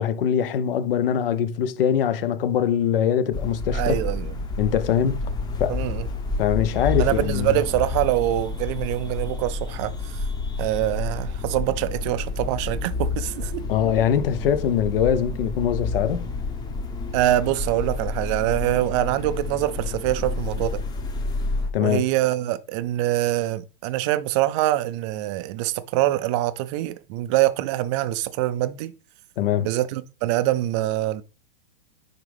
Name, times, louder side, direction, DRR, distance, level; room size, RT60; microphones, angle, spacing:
voice 1, 0.0-4.0 4.6-5.2 5.6-5.8 6.4-7.6 13.7-16.3 21.7-22.1 29.4-29.7, left 9 dB, 65° left, 0.8 m, -22 dB
sound 1, 3.3-21.7, left 3 dB, 15° left, 0.9 m, -29 dB
voice 2, 3.7-4.3 5.7-6.1 7.0-10.2 10.6-13.6 17.1-20.8 21.8-28.9 29.6-31.2, right 14 dB, 30° right, 0.4 m, -24 dB
9.7 x 3.7 x 3.4 m
hypercardioid pair, 140°, 31 cm